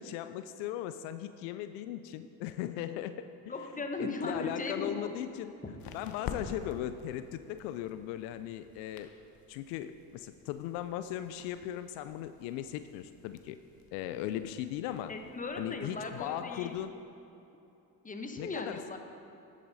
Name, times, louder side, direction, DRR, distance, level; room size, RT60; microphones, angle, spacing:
voice 1, 0.0-3.3 3.7-5.5 5.9-9.1 9.5-13.6 13.9-15.1 15.6-16.9 18.4-18.8, left 12 dB, 75° left, 11 dB, 0.5 m, -38 dB
voice 2, 3.5-5.1 5.6-5.8 15.1-16.8 18.0-19.0, left 3 dB, 15° left, 4 dB, 1.1 m, -38 dB
sound 1, 4.5-16.9, left 6 dB, 50° left, 1.0 m, -50 dB
11.0 x 8.3 x 4.0 m, 2.9 s
supercardioid pair, 75°, 46 cm